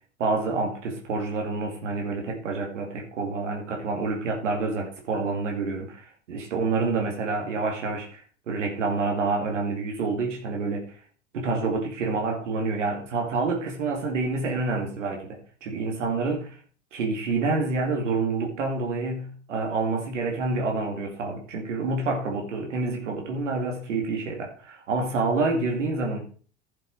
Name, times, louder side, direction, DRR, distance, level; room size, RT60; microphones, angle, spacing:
voice 1, 0.2-10.9 11.3-16.5 16.9-26.2, right 3 dB, 80° right, 2 dB, 2.4 m, -28 dB
11.5 x 6.6 x 4.8 m, 0.42 s
hypercardioid pair, 80°, 36 cm